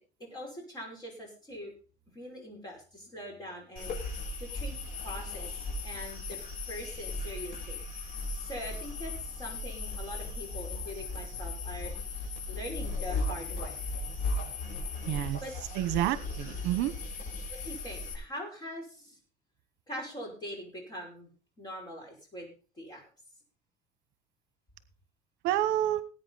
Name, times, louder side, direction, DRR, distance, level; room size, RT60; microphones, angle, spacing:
voice 1, 0.2-1.7 2.1-4.8 5.0-6.4 6.7-7.8 8.4-11.9 12.5-13.7 15.1-15.6 17.5-19.2 19.9-21.3 21.6-22.5 22.8-23.0, equal, 20° left, 0 dB, 5.6 m, -42 dB
sound 1, 3.8-18.1, left 2 dB, 45° left, 5.6 m, -37 dB
voice 2, 15.1-15.4 15.7-16.9 25.4-26.0, right 13 dB, 70° right, 14 dB, 1.0 m, -28 dB
19.5 x 8.9 x 4.0 m, 0.37 s
cardioid pair, 170°, 18 cm